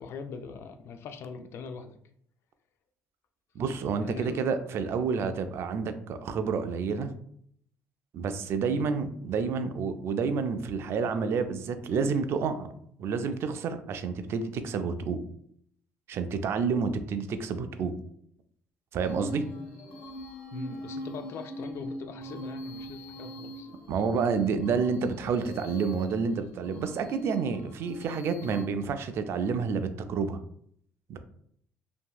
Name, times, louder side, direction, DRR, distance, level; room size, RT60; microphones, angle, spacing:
voice 1, 0.0-2.0 4.0-4.5 8.7-8.9 20.5-23.7, left 5 dB, 60° left, 7 dB, 0.4 m, -41 dB
voice 2, 3.6-7.1 8.1-12.7 13.0-15.2 16.1-17.9 18.9-19.4 23.9-30.4 31.1-31.2, right 5 dB, 60° right, 9 dB, 0.4 m, -29 dB
sound 1, 19.0-28.6, equal, 75° left, 0.9 m, -42 dB
2.8 x 2.6 x 2.3 m, 0.65 s
supercardioid pair, 85°, 5 cm